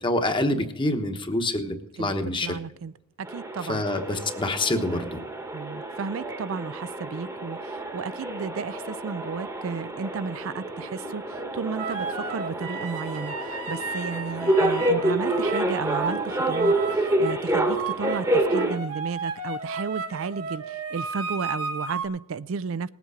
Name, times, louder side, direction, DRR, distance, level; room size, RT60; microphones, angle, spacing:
voice 1, 0.0-2.6 3.7-5.2, left 1 dB, 20° left, 6 dB, 1.1 m, -26 dB
voice 2, 2.4-2.9 3.2-3.8 5.5-22.9, right 5 dB, 60° right, 16 dB, 0.4 m, -33 dB
sound 1, 3.2-18.8, right 1 dB, 15° right, 1.1 m, -28 dB
sound 2, 11.8-17.4 17.7-22.1, right 4 dB, 85° right, 1.6 m, -33 dB
19.0 x 8.2 x 5.0 m, 0.89 s
head